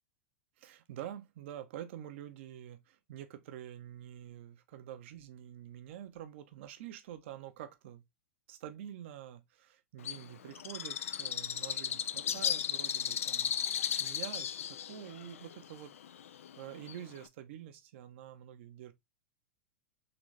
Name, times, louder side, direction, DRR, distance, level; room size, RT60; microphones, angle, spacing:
voice 1, 0.6-8.0 8.5-18.9, right 11 dB, 60° right, 0.7 m, -47 dB
Bird, 10.0-17.3, left 9 dB, 80° left, 0.3 m, -36 dB
3.9 x 3.0 x 3.2 m
hypercardioid pair, 110°, 7 cm